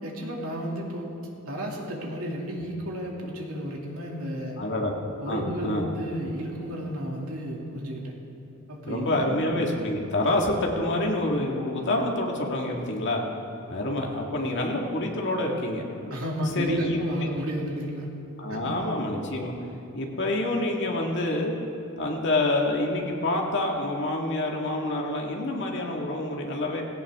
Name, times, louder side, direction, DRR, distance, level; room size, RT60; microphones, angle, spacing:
voice 1, 0.0-1.1 1.5-4.6 5.2-8.1 8.7-9.4 16.1-18.1 18.5-18.6, equal, 75° right, -1 dB, 2.5 m, -32 dB
voice 2, 4.6-4.9 5.3-5.9 8.9-13.2 13.7-15.9 16.6-17.0 18.4-19.5 19.9-21.5 22.0-26.8, left 1 dB, 55° left, 0 dB, 1.9 m, -27 dB
17.5 x 17.0 x 3.6 m, 2.7 s
head